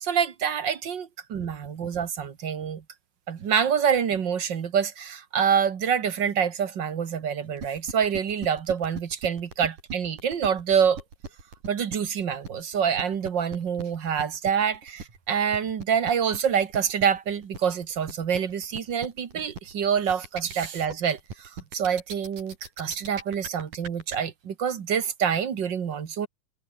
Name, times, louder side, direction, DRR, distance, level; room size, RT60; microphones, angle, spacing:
voice 1, 0.0-2.8 3.3-11.0 11.7-26.3, right 7 dB, 45° right, 1.8 m, -26 dB
sound 1, 7.6-24.2, right 4 dB, 80° right, 7.5 m, -38 dB
omnidirectional pair, 3.6 m